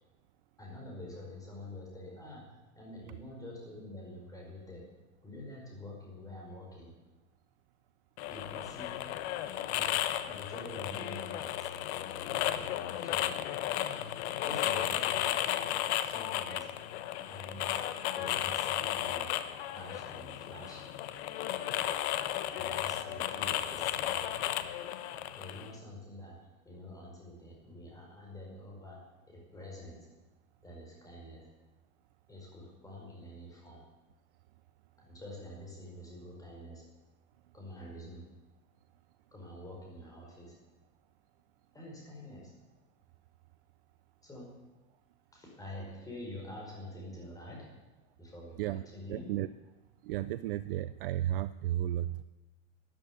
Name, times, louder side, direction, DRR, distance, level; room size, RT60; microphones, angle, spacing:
voice 1, 0.6-2.4 2.7-4.9 5.2-6.9 8.3-8.9 9.7-10.0 10.2-11.7 13.0-13.3 14.4-15.4 16.0-16.7 17.2-17.8 18.1-19.3 19.7-20.9 22.5-24.3 25.3-26.4 26.6-29.0 29.3-30.1 30.6-31.5 32.3-33.9 35.0-36.8 37.5-38.2 39.3-40.6 41.7-42.5 44.2-44.5 45.3-47.7 48.2-49.3, left 1 dB, 10° left, -1 dB, 5.0 m, -47 dB
sound 1, 8.2-25.7, left 12 dB, 50° left, 1.1 m, -34 dB
voice 2, 49.1-49.5 50.0-52.2, right 13 dB, 45° right, 15 dB, 0.4 m, -33 dB
14.0 x 10.5 x 9.4 m, 1.1 s
supercardioid pair, 155°, 41 cm